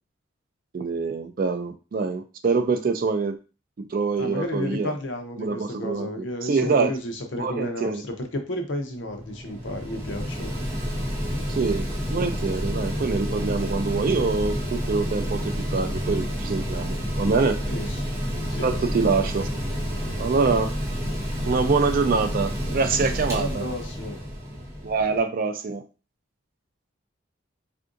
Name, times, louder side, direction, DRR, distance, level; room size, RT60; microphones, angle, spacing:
voice 1, 0.7-3.4 3.9-4.9 5.4-6.9 7.4-8.0 11.5-17.6 18.6-19.5 20.2-20.7 21.5-23.6 24.8-25.8, right 4 dB, 45° right, 7 dB, 0.3 m, -25 dB
voice 2, 4.2-10.5 17.7-18.0 18.5-18.7 23.3-24.2, left 1 dB, 60° left, 4 dB, 0.6 m, -32 dB
Mechanical fan, 8.9-25.2, equal, 15° right, 0.7 m, -29 dB
3.6 x 2.5 x 2.5 m, 0.33 s
head